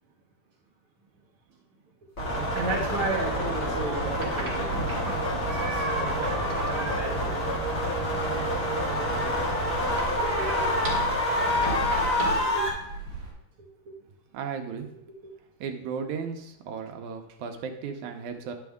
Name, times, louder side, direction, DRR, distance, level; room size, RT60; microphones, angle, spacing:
sound 1, 2.2-12.7, left 1 dB, 30° left, 1.7 m, -27 dB
voice 1, 2.5-6.4 6.7-7.3 12.5-12.7 14.9-15.0, right 3 dB, 60° right, -4 dB, 1.5 m, -34 dB
sound 2, 3.8-13.3, right 2 dB, 35° right, 2.7 m, -35 dB
voice 2, 14.3-14.9 15.6-18.5, right 6 dB, 75° right, 4 dB, 2.1 m, -35 dB
10.5 x 6.3 x 3.5 m, 0.85 s
omnidirectional pair, 3.7 m